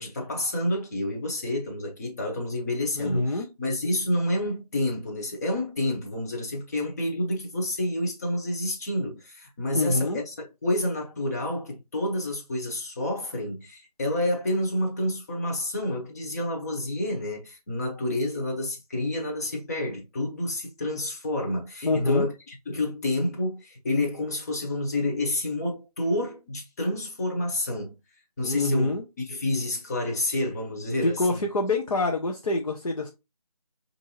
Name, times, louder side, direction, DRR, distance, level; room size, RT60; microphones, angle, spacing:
voice 1, 0.0-28.0 28.4-31.4, left 1 dB, 25° left, 0.8 m, -29 dB
voice 2, 3.0-3.5 9.7-10.2 21.8-22.2 28.4-29.0 31.0-33.1, left 2 dB, 55° left, 0.7 m, -25 dB
4.9 x 2.7 x 2.9 m
figure-of-eight pair, 160°, 20 cm